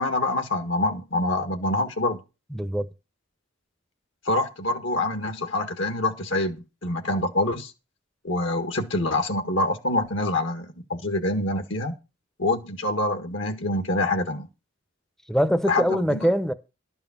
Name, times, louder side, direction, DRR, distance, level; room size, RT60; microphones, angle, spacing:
voice 1, 0.0-2.2 4.3-7.7 8.2-12.0 12.4-14.5 15.7-16.2, left 2 dB, 70° left, 1.8 m, -26 dB
voice 2, 2.5-2.9 15.3-16.5, equal, 5° left, 0.8 m, -23 dB
12.0 x 5.4 x 7.3 m
head